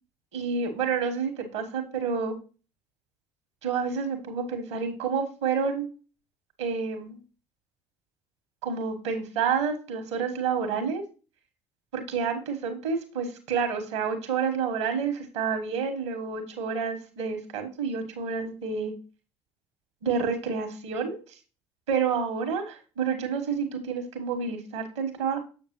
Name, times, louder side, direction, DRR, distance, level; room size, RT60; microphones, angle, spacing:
voice 1, 0.3-2.4 3.6-5.9 6.6-7.2 8.6-11.0 11.9-18.9 20.0-21.2 21.9-25.4, right 6 dB, 70° right, 6 dB, 1.4 m, -29 dB
6.9 x 6.6 x 3.0 m, 0.34 s
figure-of-eight pair, 55°, 15 cm